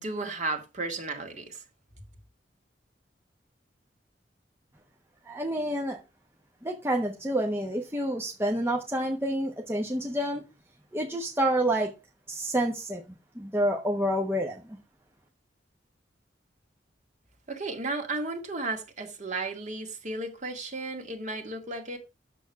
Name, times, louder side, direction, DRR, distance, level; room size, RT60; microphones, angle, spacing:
voice 1, 0.0-1.6 17.5-22.0, right 2 dB, 40° right, 2.0 m, -34 dB
voice 2, 5.3-6.0 6.6-10.4 10.9-11.9 12.3-13.0 13.3-14.8, right 1 dB, 15° right, 1.1 m, -28 dB
9.0 x 7.0 x 4.7 m
head